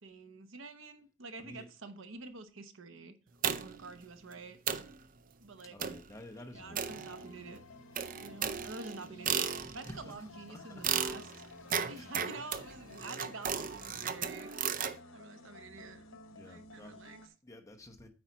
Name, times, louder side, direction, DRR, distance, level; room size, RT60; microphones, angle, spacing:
voice 1, 0.0-3.1 3.5-4.6 5.4-5.8 6.5-7.6 8.2-11.3 11.9-17.3, right 3 dB, 70° right, 1.0 m, -48 dB
sound 1, 3.4-3.9 4.3-4.4 4.7-5.0 5.8-6.1 6.8-7.5 8.0-10.0 10.8-15.0, right 7 dB, 40° right, 0.5 m, -35 dB
voice 2, 5.7-7.1 9.0-9.1 9.5-10.8 11.9-12.1 16.3-17.1 17.4-18.1, left 1 dB, 15° left, 0.9 m, -51 dB
sound 2, 6.5-17.3, left 2 dB, 85° left, 0.9 m, -53 dB
8.8 x 4.9 x 4.0 m
head